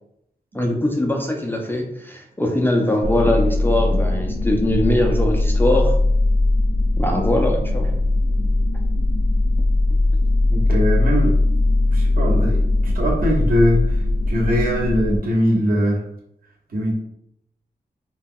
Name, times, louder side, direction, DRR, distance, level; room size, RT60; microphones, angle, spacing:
voice 1, 0.5-5.9 7.0-8.0, left 1 dB, 15° left, 0 dB, 0.3 m, -21 dB
sound 1, 3.0-15.2, left 2 dB, 85° left, 0.4 m, -19 dB
voice 2, 10.5-11.3 11.9-14.0 14.3-16.0 16.7-16.9, equal, 60° right, -4 dB, 0.9 m, -21 dB
2.2 x 2.1 x 3.5 m, 0.75 s
wide cardioid pair, 130°, 16 cm